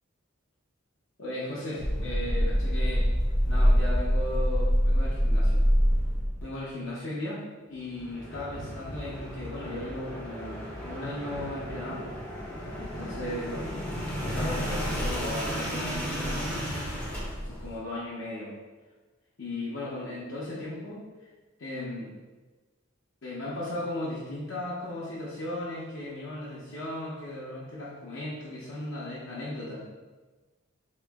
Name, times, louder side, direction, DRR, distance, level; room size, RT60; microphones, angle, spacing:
voice 1, 1.2-3.1 3.5-5.6 6.4-12.1 12.8-16.7 17.0-18.5 19.4-21.1 21.6-22.1 23.2-29.8, left 1 dB, 65° left, -7 dB, 0.7 m, -36 dB
sound 1, 1.8-6.4 7.9-17.8, equal, 10° left, 0.5 m, -28 dB
3.0 x 2.9 x 3.5 m, 1.2 s
head